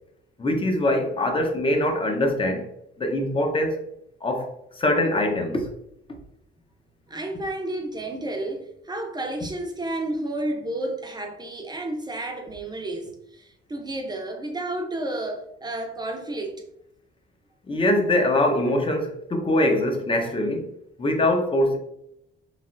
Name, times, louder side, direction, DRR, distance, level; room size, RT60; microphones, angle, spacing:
voice 1, 0.4-2.6 3.0-3.8 4.2-4.5 4.8-5.7 17.7-20.7 21.0-21.8, left 1 dB, 25° left, 0.6 m, -23 dB
voice 2, 7.1-16.6, right 1 dB, 20° right, 0.6 m, -31 dB
3.2 x 2.6 x 2.5 m
cardioid pair, 90°, 20 cm